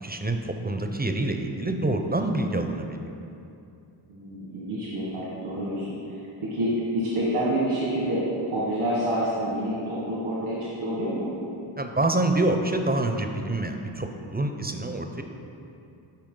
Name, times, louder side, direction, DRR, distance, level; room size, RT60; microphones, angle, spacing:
voice 1, 0.0-3.0 11.8-15.2, right 2 dB, 20° right, 5 dB, 0.6 m, -26 dB
voice 2, 4.1-6.2 6.5-11.3, right 1 dB, 90° right, -7 dB, 1.6 m, -28 dB
11.5 x 4.2 x 3.8 m, 2.7 s
cardioid pair, 50°, 50 cm